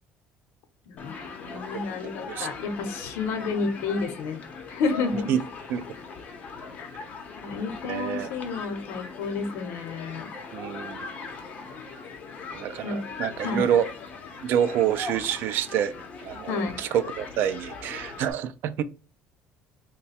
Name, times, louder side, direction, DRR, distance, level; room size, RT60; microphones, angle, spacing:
voice 1, 0.9-5.3 6.8-6.9 7.4-10.3 12.8-13.0 13.4-13.7 16.5-16.8, left 4 dB, 75° left, 0.7 m, -31 dB
Human group actions, 1.0-18.3, left 4 dB, 35° left, 0.8 m, -40 dB
voice 2, 1.5-2.5 5.3-5.4 5.7-5.8 7.9-8.3 10.5-11.0 12.5-13.9 14.4-15.9 16.2-18.8, right 9 dB, 60° right, 0.4 m, -27 dB
3.2 x 2.2 x 4.1 m
cardioid pair, 155°, 4 cm